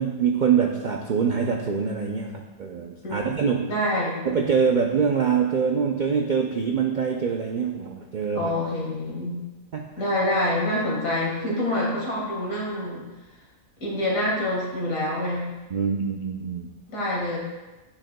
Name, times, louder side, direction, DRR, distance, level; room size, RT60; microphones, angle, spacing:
voice 1, 0.0-3.8 4.2-8.5 9.7-9.8 15.7-16.7, right 6 dB, 65° right, 1 dB, 0.4 m, -24 dB
voice 2, 3.7-4.3 8.4-9.4 10.0-13.0 13.8-15.5 16.9-17.4, left 1 dB, 70° left, -3 dB, 2.2 m, -26 dB
9.8 x 6.4 x 2.2 m, 1.1 s
omnidirectional pair, 1.5 m